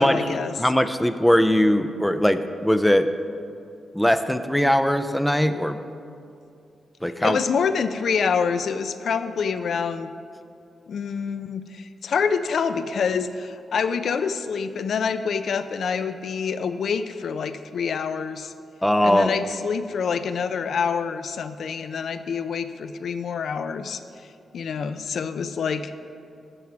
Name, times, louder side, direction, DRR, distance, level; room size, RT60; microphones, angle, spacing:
voice 1, 0.0-0.5 7.2-10.1 10.9-18.5 19.0-24.0 24.5-25.9, left 6 dB, 70° left, 10 dB, 0.4 m, -26 dB
voice 2, 0.6-3.1 3.9-5.8 7.0-7.4 18.8-19.4, equal, 5° left, 10 dB, 0.4 m, -20 dB
13.0 x 4.6 x 6.0 m, 2.5 s
wide cardioid pair, 130°, 0 cm